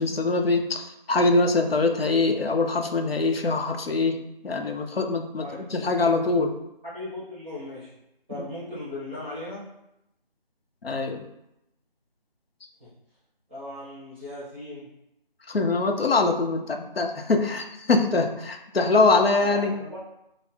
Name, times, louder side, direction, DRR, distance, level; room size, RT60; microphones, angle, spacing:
voice 1, 0.0-6.6 10.8-11.2 15.5-19.7, left 3 dB, 80° left, 4 dB, 0.7 m, -23 dB
voice 2, 6.8-7.9 8.3-9.7 12.8-12.9 13.5-14.9 19.4-20.0, left 1 dB, 10° right, -11 dB, 0.8 m, -37 dB
5.3 x 2.1 x 3.3 m, 0.86 s
figure-of-eight pair, 170°, 29 cm